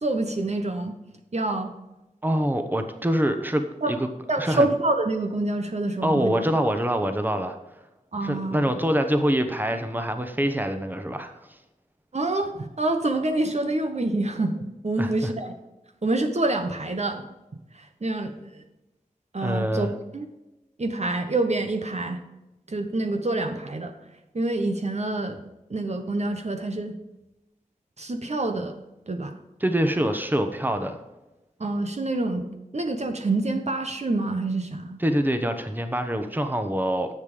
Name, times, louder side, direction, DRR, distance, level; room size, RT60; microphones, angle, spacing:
voice 1, 0.0-0.9 1.3-1.7 3.8-4.0 4.3-6.3 8.1-8.6 12.1-15.5 16.0-17.2 17.7-18.6 19.3-19.9 20.1-20.3 20.8-22.2 22.7-23.9 24.3-25.4 25.7-26.9 28.0-28.7 29.1-29.3 31.6-35.0, right 2 dB, 50° right, 6 dB, 1.1 m, -27 dB
voice 2, 2.2-4.1 4.4-4.7 6.0-7.6 8.2-11.6 15.0-15.3 19.4-19.9 29.6-31.0 35.0-37.1, equal, 15° right, 7 dB, 1.2 m, -25 dB
10.5 x 7.5 x 5.2 m, 1.0 s
wide cardioid pair, 65°, 14 cm